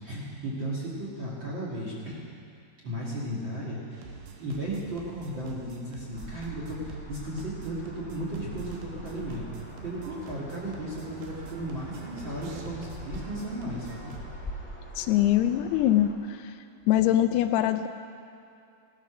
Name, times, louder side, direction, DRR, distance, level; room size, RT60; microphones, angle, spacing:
voice 1, 0.0-2.4 2.8-4.0 4.4-9.4 9.8-14.1, right 1 dB, 40° right, -6 dB, 2.0 m, -35 dB
sound 1, 3.9-14.3, right 4 dB, 65° right, 2.7 m, -46 dB
sound 2, 6.1-16.1, equal, 5° left, 0.8 m, -44 dB
voice 2, 15.0-16.5 16.9-17.9, left 12 dB, 85° left, 9 dB, 2.6 m, -23 dB
16.5 x 12.0 x 6.2 m, 2.5 s
omnidirectional pair, 4.7 m